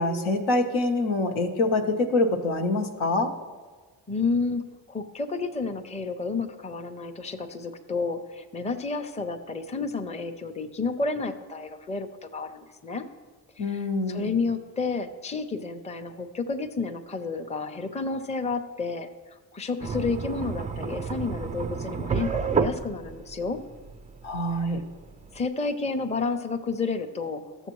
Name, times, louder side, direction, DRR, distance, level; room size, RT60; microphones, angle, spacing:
voice 1, 0.0-3.3 13.6-14.4 24.2-24.8, left 2 dB, 75° left, 3 dB, 1.0 m, -25 dB
voice 2, 4.1-13.1 13.6-13.8 14.1-23.6 25.3-27.7, left 4 dB, 15° left, 6 dB, 0.6 m, -31 dB
sound 1, 19.8-25.4, right 5 dB, 20° right, 0.3 m, -31 dB
12.5 x 7.0 x 3.1 m, 1.4 s
supercardioid pair, 60°, 47 cm